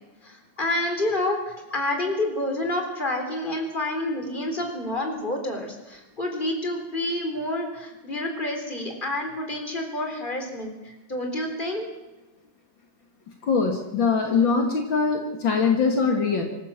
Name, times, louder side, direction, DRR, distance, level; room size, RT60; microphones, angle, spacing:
voice 1, 0.2-11.8, left 1 dB, 25° left, 3 dB, 4.1 m, -29 dB
voice 2, 13.4-16.4, left 5 dB, 65° left, 2 dB, 2.9 m, -22 dB
25.5 x 14.5 x 7.5 m, 1.1 s
omnidirectional pair, 2.2 m